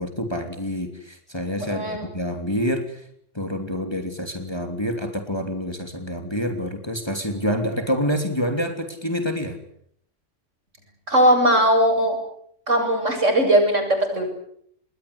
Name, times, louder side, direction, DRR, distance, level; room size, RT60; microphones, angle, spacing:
voice 1, 0.0-3.0 3.3-9.6, equal, 20° left, 6 dB, 3.2 m, -27 dB
voice 2, 1.6-2.1 11.1-12.2 12.7-14.3, equal, 85° right, 4 dB, 8.4 m, -19 dB
28.0 x 21.5 x 8.5 m, 0.67 s
omnidirectional pair, 1.2 m